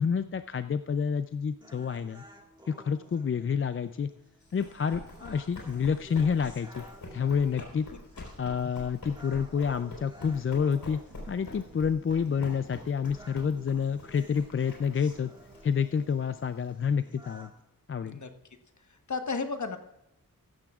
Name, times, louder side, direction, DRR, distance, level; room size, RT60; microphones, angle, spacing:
voice 1, 0.0-2.2 2.7-4.1 4.5-6.8 7.1-7.9 8.4-11.0 11.3-15.3 15.6-17.5 17.9-18.2, left 6 dB, 40° left, 11 dB, 0.4 m, -29 dB
sound 1, 1.6-17.6, right 1 dB, 15° right, 1.7 m, -54 dB
Run, 4.4-16.7, left 2 dB, 85° left, 4.1 m, -46 dB
sound 2, 11.1-16.7, right 2 dB, 35° right, 1.3 m, -57 dB
voice 2, 18.9-19.8, left 4 dB, 55° left, 7 dB, 1.2 m, -34 dB
15.0 x 13.0 x 2.4 m, 0.90 s
wide cardioid pair, 100°, 34 cm